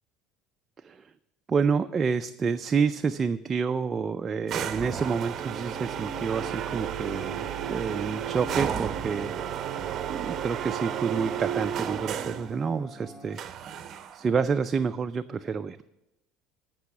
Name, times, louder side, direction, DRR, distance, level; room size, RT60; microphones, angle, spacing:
voice 1, 1.5-9.4 10.1-13.8 14.1-15.8, right 5 dB, 25° right, 8 dB, 0.4 m, -28 dB
sound 1, 4.5-12.5 13.4-14.3, right 9 dB, 40° right, 0.7 m, -33 dB
sound 2, 5.3-13.4, right 2 dB, 30° left, 1.9 m, -45 dB
14.5 x 6.2 x 5.9 m, 0.90 s
supercardioid pair, 120°, 0 cm